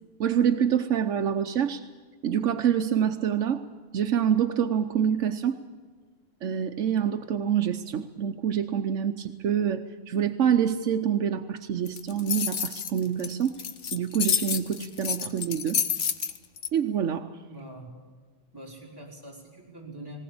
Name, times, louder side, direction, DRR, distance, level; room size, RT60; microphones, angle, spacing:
voice 1, 0.2-1.8 2.2-3.6 3.9-5.6 6.4-13.6 13.9-15.8 16.7-17.4, right 8 dB, 90° right, 5 dB, 1.2 m, -26 dB
sound 1, 11.9-16.7, left 7 dB, 75° left, 1.3 m, -29 dB
voice 2, 17.5-17.9 18.5-20.2, right 1 dB, 20° right, -3 dB, 4.2 m, -43 dB
19.5 x 19.0 x 8.6 m, 1.4 s
omnidirectional pair, 1.2 m